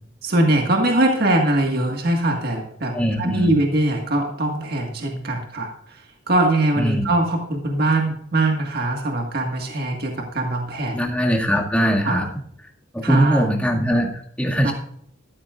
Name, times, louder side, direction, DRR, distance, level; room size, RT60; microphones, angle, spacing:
voice 1, 0.2-11.0 12.0-12.2 13.0-13.5 14.6-14.7, right 1 dB, 50° right, 2 dB, 1.7 m, -22 dB
voice 2, 2.9-3.5 6.8-7.0 10.9-12.3 12.9-14.7, equal, 5° left, -1 dB, 2.0 m, -21 dB
14.0 x 13.0 x 2.5 m, 0.68 s
head